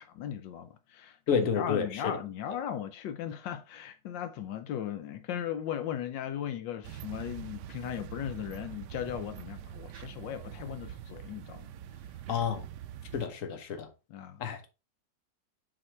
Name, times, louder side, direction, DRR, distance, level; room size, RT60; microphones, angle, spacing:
voice 1, 0.0-11.7 14.1-14.4, left 10 dB, 80° left, 1.4 m, -37 dB
voice 2, 1.3-2.1 12.3-12.7 13.1-13.9 14.4-14.7, left 6 dB, 50° left, 1.4 m, -30 dB
sound 1, 6.8-13.3, right 11 dB, 75° right, 1.1 m, -44 dB
7.6 x 4.0 x 4.4 m
omnidirectional pair, 2.0 m